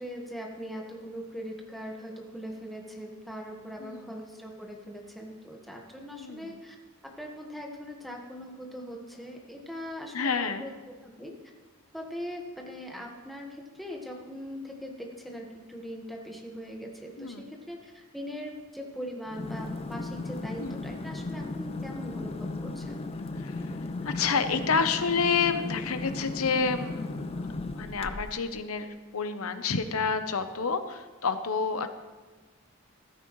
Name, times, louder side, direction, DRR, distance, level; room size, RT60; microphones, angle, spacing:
voice 1, 0.0-6.7 7.0-10.7 11.0-11.3 11.9-23.0, equal, ahead, 0 dB, 1.5 m, -41 dB
voice 2, 6.2-6.6 10.1-10.7 17.2-17.5 20.6-20.9 23.4-23.7 24.0-27.4 27.7-31.9, left 5 dB, 90° left, 9 dB, 0.8 m, -29 dB
sound 1, 19.3-28.5, left 2 dB, 25° left, 0.4 m, -36 dB
14.5 x 13.0 x 3.2 m, 1.3 s
head